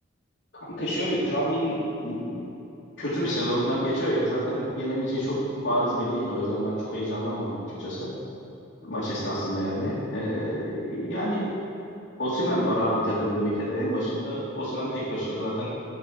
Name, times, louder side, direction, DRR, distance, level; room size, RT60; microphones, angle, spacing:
voice 1, 0.6-2.4 3.0-8.1 8.8-11.4 12.2-15.7, equal, 65° left, -11 dB, 2.0 m, -28 dB
8.6 x 4.7 x 6.6 m, 2.9 s
head